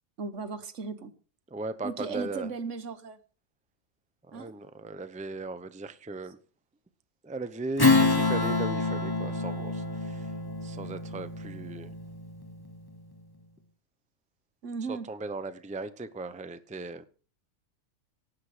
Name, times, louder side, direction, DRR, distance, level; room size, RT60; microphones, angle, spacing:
voice 1, 0.2-1.1 1.8-3.2 4.3-4.5 14.6-15.1, right 5 dB, 65° right, 1.5 m, -36 dB
voice 2, 1.5-2.5 4.3-6.4 7.2-10.3 10.6-11.9 14.9-17.1, right 3 dB, 5° right, 0.7 m, -38 dB
Strum, 7.8-12.7, left 3 dB, 20° left, 1.0 m, -27 dB
18.0 x 9.4 x 5.0 m
omnidirectional pair, 1.4 m